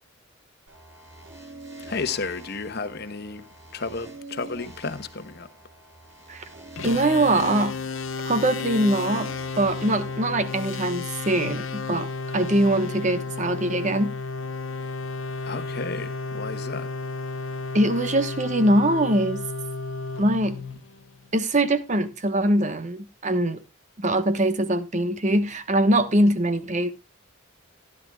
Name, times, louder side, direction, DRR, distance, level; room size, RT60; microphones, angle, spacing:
sound 1, 0.7-10.5, right 2 dB, 70° right, 7.6 m, -46 dB
voice 1, 1.8-5.5 15.4-16.9, left 4 dB, 55° left, 1.0 m, -33 dB
sound 2, 6.8-21.3, left 4 dB, 80° left, 1.0 m, -33 dB
voice 2, 6.8-7.8 8.2-14.2 17.7-19.4 20.2-20.6 21.3-23.6 24.0-26.9, right 1 dB, 35° right, 1.1 m, -22 dB
15.5 x 10.5 x 2.3 m
head